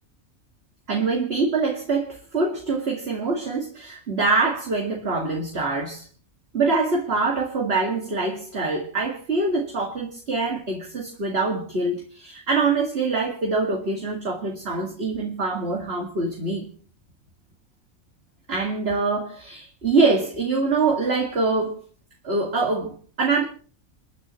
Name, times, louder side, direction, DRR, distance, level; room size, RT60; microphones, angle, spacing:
voice 1, 0.9-6.1 6.5-16.7 18.5-21.8 22.2-23.4, right 3 dB, 45° right, 0 dB, 2.5 m, -24 dB
30.0 x 10.0 x 3.1 m, 0.43 s
omnidirectional pair, 1.5 m